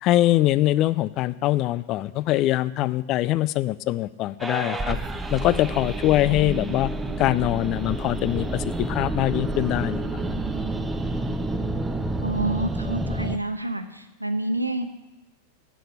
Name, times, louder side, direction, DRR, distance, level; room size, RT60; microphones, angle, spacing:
voice 1, 0.0-5.0 5.3-6.9 7.2-10.2, left 15 dB, 35° left, 17 dB, 0.4 m, -23 dB
sound 1, 4.4-13.4, right 2 dB, 10° right, 0.7 m, -29 dB
voice 2, 12.2-14.8, right 1 dB, 85° right, 8 dB, 0.7 m, -28 dB
8.3 x 7.7 x 8.2 m, 1.0 s
figure-of-eight pair, 90°, 0 cm